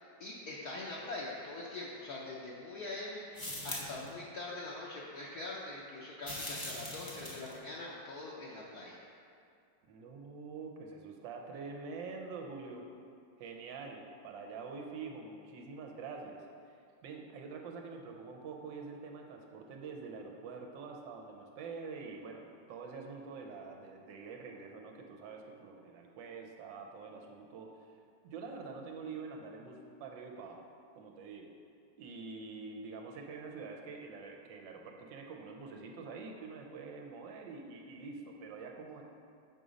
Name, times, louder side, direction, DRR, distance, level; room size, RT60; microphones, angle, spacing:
voice 1, 0.2-9.0, left 2 dB, 65° left, -5 dB, 1.0 m, -43 dB
sound 1, 3.3-4.1 6.2-7.6, left 1 dB, 25° left, 0.4 m, -41 dB
voice 2, 9.9-12.8 13.4-16.8 17.0-27.8 28.2-30.6 30.9-31.5 32.0-39.0, right 4 dB, 80° right, 1 dB, 1.3 m, -46 dB
6.6 x 4.0 x 4.9 m, 2.4 s
omnidirectional pair, 2.0 m